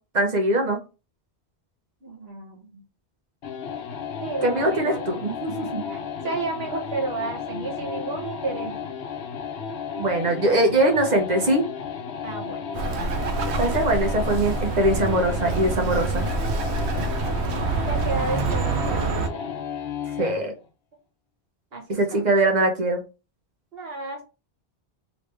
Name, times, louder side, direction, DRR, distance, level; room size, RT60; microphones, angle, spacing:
voice 1, 0.1-0.8 4.4-5.9 10.0-11.7 13.6-16.2 20.2-20.5 21.9-23.0, right 1 dB, 45° right, 2 dB, 0.9 m, -22 dB
voice 2, 2.0-2.8 4.2-5.1 5.9-8.8 12.2-12.6 17.2-19.4 21.7-22.2 23.7-24.2, right 3 dB, 70° right, 1 dB, 1.4 m, -32 dB
sound 1, 3.4-20.4, left 6 dB, 75° left, 0.9 m, -33 dB
Bird, 12.7-19.3, right 4 dB, 90° right, 0.9 m, -26 dB
3.2 x 3.0 x 3.2 m, 0.31 s
omnidirectional pair, 1.1 m